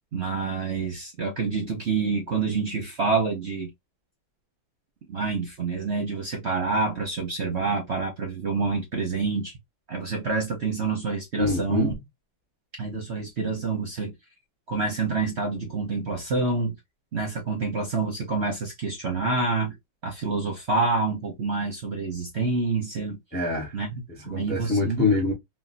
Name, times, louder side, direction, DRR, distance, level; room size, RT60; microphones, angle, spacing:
voice 1, 0.1-3.7 5.1-9.5 9.9-12.0 12.8-14.1 14.7-16.8 17.1-19.8 20.0-23.2 23.7-25.1, right 4 dB, 50° right, 0.8 m, -27 dB
voice 2, 11.4-11.9 23.3-23.8 24.2-25.3, left 3 dB, 15° left, 0.4 m, -25 dB
3.6 x 2.3 x 2.4 m
omnidirectional pair, 2.1 m